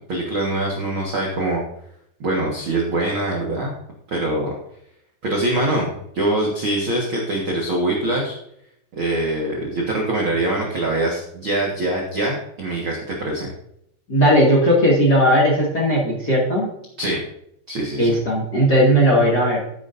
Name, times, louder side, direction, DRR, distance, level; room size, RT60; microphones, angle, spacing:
voice 1, 0.1-1.6 2.2-3.7 4.1-4.5 5.2-5.9 6.1-8.3 8.9-13.5 17.0-17.2 17.7-18.2, right 1 dB, 70° right, -2 dB, 1.2 m, -23 dB
voice 2, 14.1-16.7 18.0-19.6, equal, 35° left, -4 dB, 1.8 m, -17 dB
14.0 x 10.0 x 2.6 m, 0.75 s
omnidirectional pair, 4.9 m